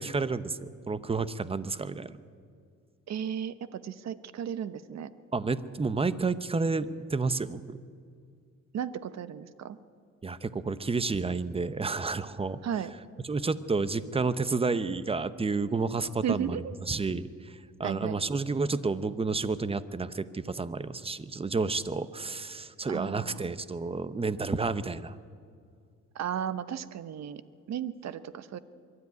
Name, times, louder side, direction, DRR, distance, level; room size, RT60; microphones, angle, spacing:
voice 1, 0.0-2.2 5.3-7.8 10.2-12.6 13.2-16.6 16.9-25.1, right 4 dB, 20° right, 15 dB, 0.8 m, -30 dB
voice 2, 3.1-5.1 8.7-9.8 12.6-12.9 16.2-16.7 17.8-18.2 22.9-23.5 26.1-27.4 27.7-28.6, right 9 dB, 60° right, 14 dB, 1.0 m, -34 dB
23.0 x 12.5 x 9.5 m, 2.2 s
cardioid pair, 90°, 30 cm